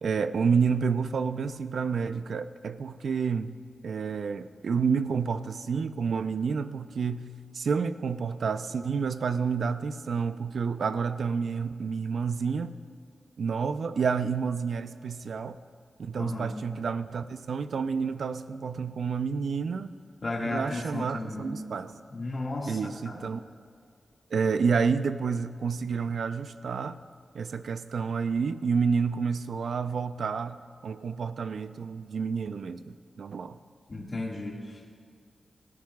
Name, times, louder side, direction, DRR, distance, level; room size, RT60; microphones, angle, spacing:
voice 1, 0.0-3.5 3.8-7.3 7.5-12.7 13.4-15.6 16.0-19.9 20.4-22.0 22.7-23.4 24.3-27.0 27.3-33.6, right 5 dB, 75° right, 11 dB, 0.5 m, -29 dB
voice 2, 16.2-16.5 20.2-21.5 22.1-22.8 23.1-23.2 33.9-34.9, left 2 dB, 35° left, -3 dB, 1.9 m, -34 dB
27.0 x 14.5 x 2.3 m, 2.2 s
wide cardioid pair, 170°, 0 cm